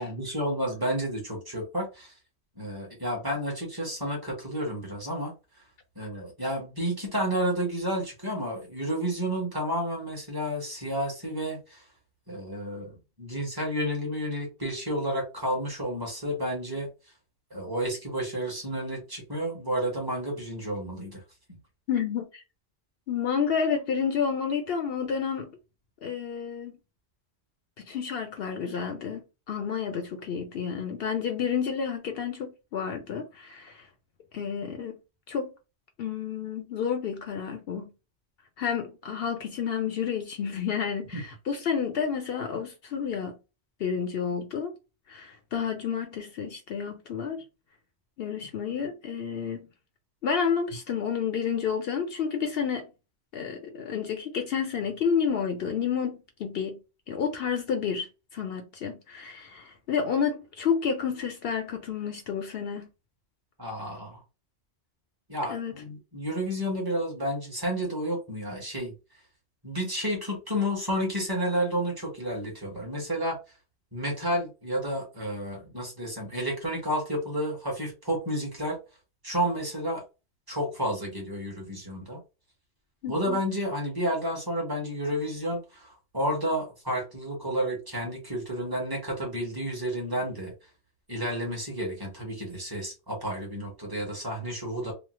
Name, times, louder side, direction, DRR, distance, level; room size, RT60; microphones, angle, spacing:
voice 1, 0.0-2.1 2.6-5.3 5.9-11.8 12.3-16.9 17.5-21.2 41.1-41.2 63.6-64.2 65.3-68.9 69.6-73.4 73.9-78.8 79.2-80.0 80.5-82.2 83.1-90.5 91.1-94.9, equal, 20° right, 1.2 m, -31 dB
voice 2, 21.9-22.4 23.1-25.6 26.0-26.7 27.8-33.9 34.3-35.0 35.3-35.5 36.0-37.9 38.6-43.4 43.8-44.7 45.1-47.4 48.2-49.7 50.2-52.9 53.3-56.8 57.1-62.9 65.5-65.8 83.0-83.4, left 7 dB, 65° left, 0.7 m, -30 dB
3.1 x 2.1 x 3.0 m
omnidirectional pair, 1.1 m